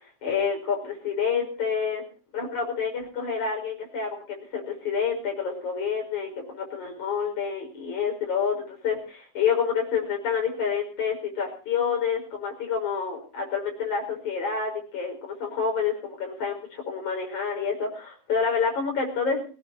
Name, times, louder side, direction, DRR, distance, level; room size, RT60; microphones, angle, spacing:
voice 1, 0.2-2.0 2.3-19.4, left 6 dB, 70° left, 1 dB, 7.0 m, -28 dB
21.5 x 19.5 x 2.9 m, 0.39 s
omnidirectional pair, 3.5 m